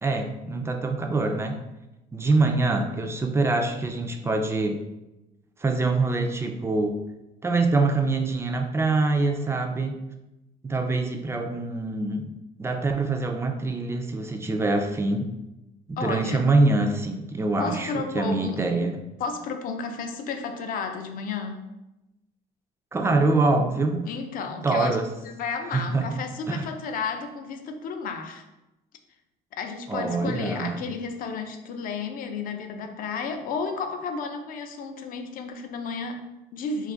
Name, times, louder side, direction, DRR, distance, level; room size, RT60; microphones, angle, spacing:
voice 1, 0.0-1.6 2.1-4.8 5.6-7.0 7.4-10.0 10.6-12.3 12.6-15.3 15.9-18.9 22.9-24.0 24.6-25.1 25.7-26.1 26.5-26.6 29.9-30.8, right 3 dB, 15° right, 4 dB, 0.3 m, -24 dB
voice 2, 16.0-16.5 17.6-18.6 19.2-21.6 24.1-25.0 25.2-28.4 29.6-36.9, left 5 dB, 55° left, 6 dB, 0.4 m, -32 dB
2.4 x 2.3 x 3.7 m, 0.95 s
cardioid pair, 110°, 17 cm